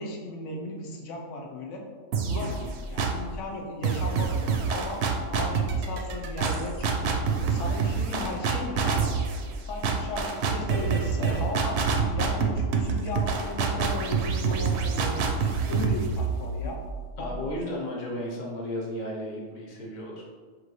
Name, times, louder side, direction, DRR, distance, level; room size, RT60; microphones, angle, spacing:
voice 1, 0.0-1.8 2.3-5.0 5.3-7.2 7.5-9.2 9.6-11.8 12.1-16.8 17.2-17.4, left 2 dB, 90° left, 1 dB, 1.0 m, -36 dB
sound 1, 2.1-3.3 3.8-17.5, right 5 dB, 70° right, 0.8 m, -27 dB
voice 2, 2.4-2.7 17.2-20.2, left 1 dB, 45° left, -2 dB, 0.9 m, -34 dB
6.2 x 2.6 x 3.1 m, 1.5 s
omnidirectional pair, 1.2 m